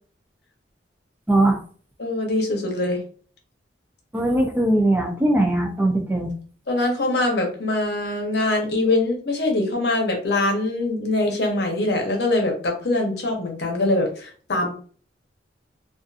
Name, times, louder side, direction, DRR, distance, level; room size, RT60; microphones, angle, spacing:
voice 1, 1.3-1.6 4.1-6.3, right 1 dB, 10° right, 2 dB, 0.3 m, -20 dB
voice 2, 2.0-3.0 6.7-14.7, left 2 dB, 60° left, 2 dB, 0.7 m, -23 dB
2.5 x 2.4 x 2.4 m, 0.43 s
head